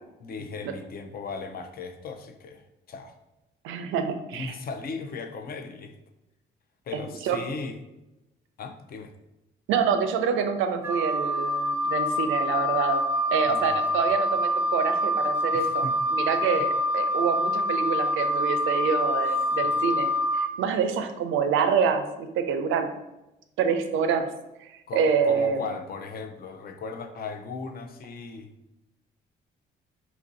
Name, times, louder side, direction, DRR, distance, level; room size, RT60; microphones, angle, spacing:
voice 1, 0.2-3.1 4.3-5.9 6.9-7.8 8.6-9.1 13.5-13.9 15.5-16.0 19.6-19.8 24.9-28.5, left 4 dB, 50° left, 7 dB, 0.5 m, -37 dB
voice 2, 3.6-4.5 6.9-7.4 9.7-15.9 16.1-20.1 20.3-22.9 23.6-24.3 24.6-25.6, right 6 dB, 85° right, 7 dB, 0.4 m, -26 dB
Wind instrument woodwind instrument, 10.8-20.5, left 1 dB, 10° right, 0.4 m, -26 dB
2.9 x 2.5 x 3.9 m, 0.95 s
cardioid pair, 90°, 20 cm